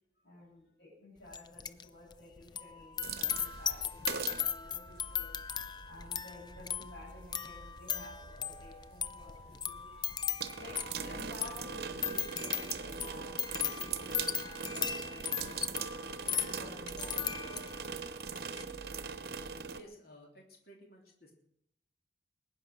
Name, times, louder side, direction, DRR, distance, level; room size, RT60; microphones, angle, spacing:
voice 1, 0.2-15.8 16.2-17.7, left 1 dB, 70° left, -9 dB, 7.6 m, -53 dB
sound 1, 1.3-1.9 2.1-17.9 18.3-18.6, left 8 dB, 25° left, 0.5 m, -37 dB
sound 2, 3.0-19.8, right 6 dB, 60° right, 1.0 m, -42 dB
voice 2, 19.7-21.3, equal, 55° left, 1 dB, 3.2 m, -55 dB
20.5 x 9.8 x 6.4 m, 0.74 s
head